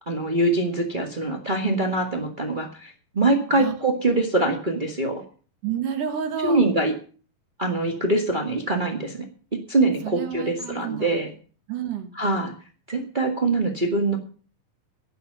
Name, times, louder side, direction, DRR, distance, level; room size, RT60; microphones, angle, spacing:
voice 1, 0.1-5.2 6.4-6.9 7.6-9.2 9.7-11.3 12.2-12.5 12.9-14.2, right 2 dB, 45° right, 2 dB, 0.6 m, -23 dB
voice 2, 5.6-6.7 10.0-11.1 11.7-12.1, right 8 dB, 65° right, 7 dB, 3.1 m, -30 dB
11.5 x 10.5 x 6.7 m, 0.41 s
omnidirectional pair, 4.1 m